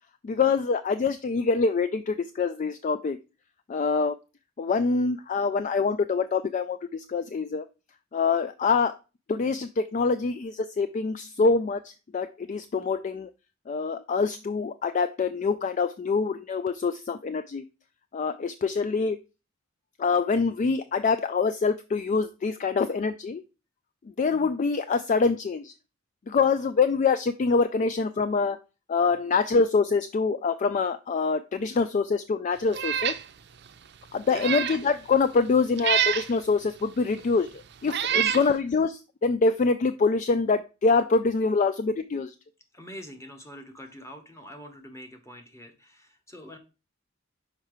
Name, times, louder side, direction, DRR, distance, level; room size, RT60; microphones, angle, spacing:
voice 1, 0.2-3.2 3.7-4.1 4.6-7.6 8.1-8.9 9.3-13.3 13.7-17.6 18.1-19.2 20.0-23.4 24.2-25.7 26.3-28.6 28.9-33.2 34.1-42.3, left 4 dB, 35° left, 12 dB, 0.3 m, -25 dB
Meow, 32.7-33.2 33.7-33.8 34.3-34.8 35.8-36.3 37.2-37.3 37.9-38.5, right 10 dB, 55° right, 0.5 m, -26 dB
voice 2, 38.1-38.5 42.7-46.6, left 1 dB, 15° left, 5 dB, 1.1 m, -44 dB
5.7 x 4.6 x 4.9 m, 0.30 s
head